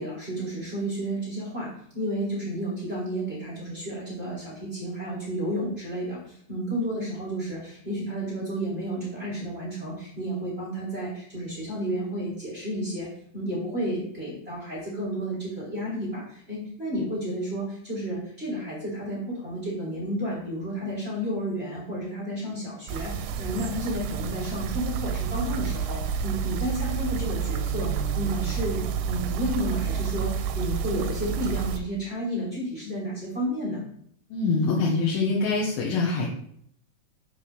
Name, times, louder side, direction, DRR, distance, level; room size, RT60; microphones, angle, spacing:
voice 1, 0.0-13.1 13.3-33.8, right 1 dB, 20° right, -8 dB, 1.8 m, -31 dB
sound 1, 22.9-31.8, right 7 dB, 85° right, 2.7 m, -29 dB
voice 2, 34.3-36.3, left 3 dB, 70° left, -4 dB, 2.7 m, -24 dB
7.0 x 4.8 x 5.3 m, 0.66 s
omnidirectional pair, 4.8 m